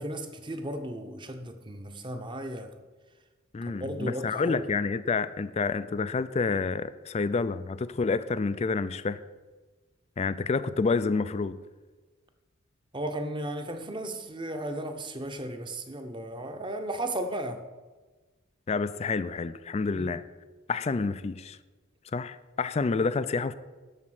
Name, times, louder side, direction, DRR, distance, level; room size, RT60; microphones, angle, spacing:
voice 1, 0.0-2.7 3.7-4.6 12.9-17.6 19.9-20.1, right 1 dB, 25° right, 0.8 m, -35 dB
voice 2, 3.5-9.2 10.2-11.6 18.7-20.2 20.7-21.6 22.1-23.5, left 4 dB, 30° left, 0.3 m, -28 dB
12.5 x 4.3 x 7.5 m
head